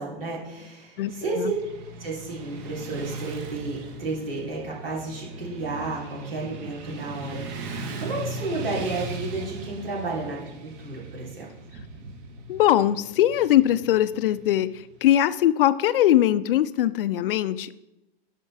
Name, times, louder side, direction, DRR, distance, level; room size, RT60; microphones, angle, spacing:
voice 1, 0.0-1.5 2.0-7.7 8.0-11.5, right 3 dB, 70° right, -5 dB, 3.2 m, -32 dB
voice 2, 1.0-1.5 12.5-17.8, left 12 dB, 65° left, 15 dB, 0.5 m, -21 dB
Motorcycle / Traffic noise roadway noise, 1.0-15.1, right 2 dB, 45° right, 1.4 m, -38 dB
11.0 x 4.5 x 4.7 m, 0.96 s
figure-of-eight pair, 100°, 30 cm